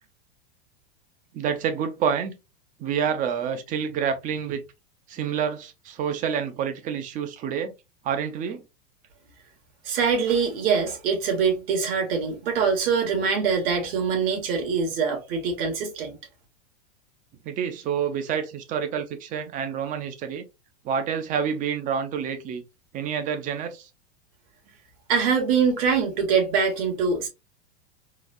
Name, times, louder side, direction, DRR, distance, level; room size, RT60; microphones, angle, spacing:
voice 1, 1.3-2.4 2.8-4.6 5.1-7.7 8.0-8.6 17.4-20.4 20.8-22.6 22.9-23.9, right 7 dB, 25° right, 0.5 m, -28 dB
voice 2, 9.8-16.2 25.1-27.3, right 5 dB, 60° right, 1.8 m, -24 dB
3.8 x 2.3 x 2.6 m
supercardioid pair, 145°, 33 cm